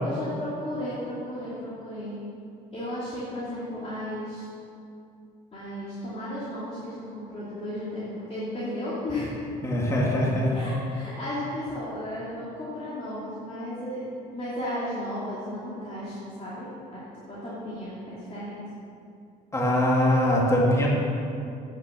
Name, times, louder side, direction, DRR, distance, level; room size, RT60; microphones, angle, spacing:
voice 1, 0.0-2.2 2.7-4.5 5.5-9.3 10.5-14.0 14.3-17.0 17.3-18.6, left 1 dB, 35° left, -9 dB, 2.6 m, -34 dB
voice 2, 9.6-10.6 19.5-20.9, left 1 dB, 15° left, -3 dB, 2.0 m, -22 dB
8.6 x 6.8 x 7.4 m, 2.6 s
cardioid pair, 110°, 17 cm